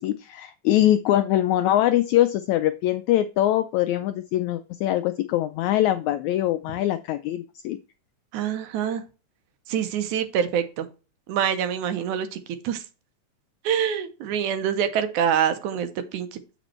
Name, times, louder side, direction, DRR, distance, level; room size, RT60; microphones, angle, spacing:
voice 1, 0.0-7.8, left 13 dB, 85° left, 10 dB, 1.6 m, -23 dB
voice 2, 8.3-9.0 9.7-10.9 11.3-12.4 12.6-12.8 13.6-16.4, right 8 dB, 75° right, 9 dB, 2.1 m, -25 dB
8.1 x 5.2 x 4.3 m, 0.32 s
omnidirectional pair, 3.8 m